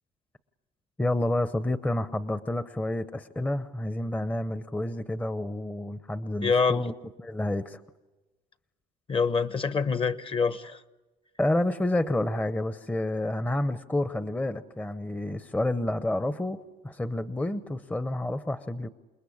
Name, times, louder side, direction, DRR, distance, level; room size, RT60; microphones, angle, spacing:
voice 1, 1.0-6.9 7.2-7.8 11.4-16.6 16.8-18.9, left 1 dB, 10° left, 11 dB, 0.8 m, -29 dB
voice 2, 6.4-6.8 9.1-10.8, left 5 dB, 30° left, 12 dB, 1.1 m, -25 dB
28.5 x 20.5 x 8.6 m, 1.2 s
cardioid pair, 110°, 17 cm